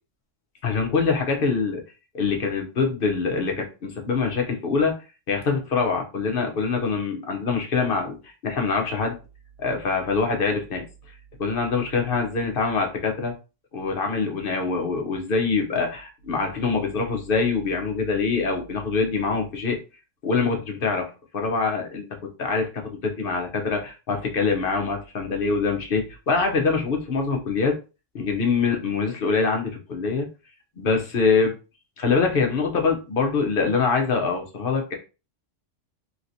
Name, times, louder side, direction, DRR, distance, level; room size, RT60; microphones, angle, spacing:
voice 1, 0.6-1.8 2.1-5.0 5.3-9.2 9.6-10.8 11.4-13.3 13.7-19.8 20.2-27.8 28.1-30.3 30.8-31.5 32.0-34.9, left 4 dB, 50° left, 2 dB, 0.9 m, -24 dB
3.2 x 2.9 x 2.6 m, 0.31 s
omnidirectional pair, 1.3 m